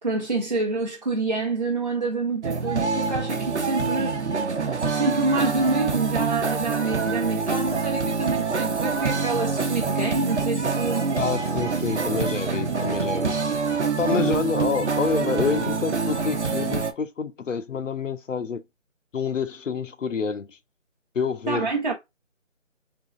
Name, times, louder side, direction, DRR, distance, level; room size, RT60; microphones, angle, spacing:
voice 1, 0.0-4.2 4.9-11.0 14.1-14.3 21.5-21.9, right 3 dB, 35° right, 0.8 m, -27 dB
sound 1, 2.4-16.9, right 4 dB, 60° right, 1.0 m, -26 dB
voice 2, 11.1-13.4 14.0-18.6 19.1-20.6 21.1-21.7, left 5 dB, 70° left, 0.8 m, -27 dB
3.8 x 2.9 x 3.8 m
figure-of-eight pair, 175°, 39 cm